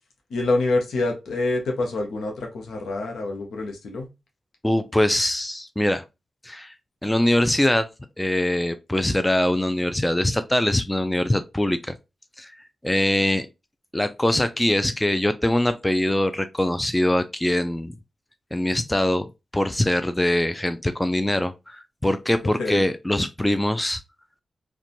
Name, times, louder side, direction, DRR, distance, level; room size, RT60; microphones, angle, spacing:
voice 1, 0.3-4.1 22.4-22.8, left 2 dB, 85° left, 0.7 m, -26 dB
voice 2, 4.6-6.0 6.4-6.7 7.0-7.9 8.2-11.9 12.4-12.5 12.8-13.5 13.9-17.9 18.5-19.3 19.5-24.0, left 1 dB, 15° left, 0.4 m, -23 dB
2.5 x 2.2 x 2.8 m
cardioid pair, 45°, 0 cm